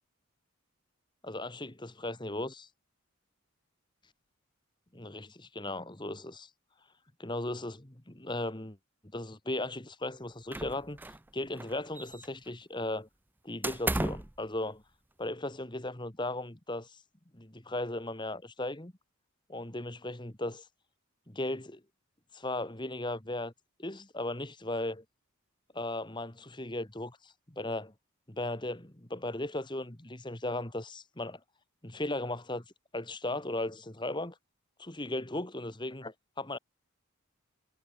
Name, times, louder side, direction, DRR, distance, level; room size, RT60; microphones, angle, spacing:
voice 1, 1.2-2.7 4.9-6.5 7.2-8.8 9.1-13.1 13.4-14.8 15.2-17.0 17.3-18.9 19.5-20.7 21.3-21.8 22.3-23.5 23.8-25.0 25.7-27.9 28.3-31.4 31.8-32.6 32.9-34.4 34.8-36.6, left 1 dB, 20° left, 1.8 m, -37 dB
sound 1, 10.5-11.3 11.5-12.5 13.6-14.4, right 2 dB, 10° right, 0.5 m, -34 dB
head